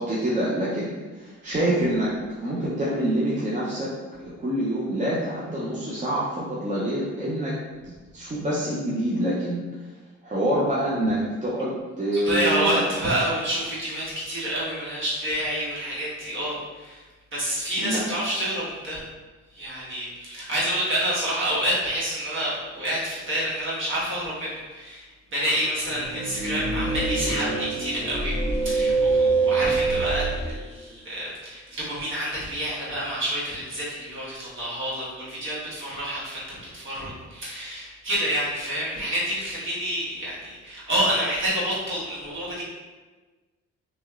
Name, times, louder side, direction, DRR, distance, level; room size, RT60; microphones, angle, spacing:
voice 1, 0.0-2.1 2.4-3.9 4.2-7.5 7.8-9.6 10.2-12.8 17.8-18.0, right 1 dB, 25° right, -7 dB, 0.6 m, -26 dB
voice 2, 12.2-17.0 17.3-19.0 19.5-42.6, equal, 40° right, -8 dB, 1.4 m, -28 dB
sound 1, 25.8-30.5, right 3 dB, 10° right, 1.1 m, -25 dB
3.0 x 2.8 x 2.4 m, 1.3 s
cardioid pair, 90°, 30 cm